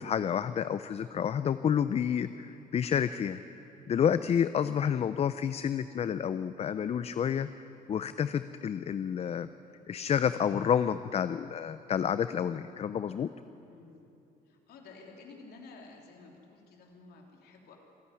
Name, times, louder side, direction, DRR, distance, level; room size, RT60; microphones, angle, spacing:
voice 1, 0.0-3.4 3.9-9.5 9.9-13.3, left 8 dB, 40° left, 13 dB, 0.5 m, -29 dB
voice 2, 14.4-17.8, left 3 dB, 70° left, 1 dB, 3.3 m, -52 dB
26.5 x 10.5 x 9.9 m, 2.9 s
cardioid pair, 110°, 17 cm